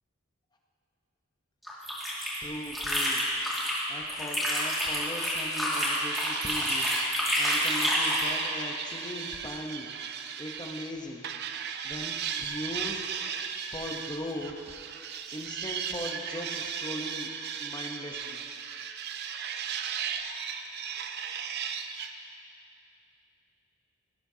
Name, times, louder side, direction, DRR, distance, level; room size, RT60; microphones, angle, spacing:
sound 1, 1.6-3.8 4.1-8.3, equal, ahead, 2.1 m, -28 dB
voice 1, 2.4-3.2 3.9-7.0 7.4-9.9 10.4-11.2 11.8-13.0 13.7-14.6 15.3-17.3 17.6-18.4, left 1 dB, 20° left, 1 dB, 0.9 m, -39 dB
sound 2, 5.2-10.9 11.2-22.1, right 7 dB, 50° right, 0.5 m, -36 dB
17.0 x 11.0 x 2.8 m, 2.6 s
head